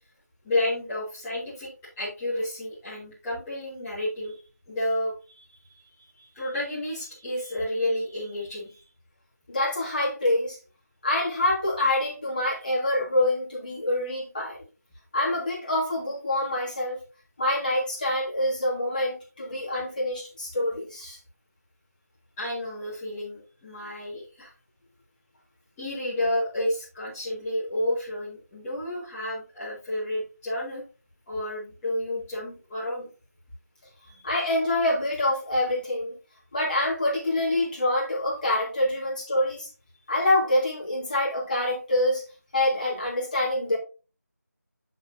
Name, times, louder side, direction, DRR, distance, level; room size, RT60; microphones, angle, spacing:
voice 1, 0.4-1.7 2.0-4.4 4.7-8.9 22.4-24.5 25.8-30.8 31.3-33.1 34.1-34.2, left 1 dB, 5° left, -14 dB, 1.7 m, -31 dB
voice 2, 9.5-10.6 11.0-14.7 15.1-17.0 17.4-21.2 34.2-36.1 36.5-39.7 40.1-42.2 42.5-43.8, left 1 dB, 30° left, -5 dB, 2.8 m, -26 dB
8.1 x 7.1 x 2.7 m, 0.33 s
figure-of-eight pair, 170°, 9 cm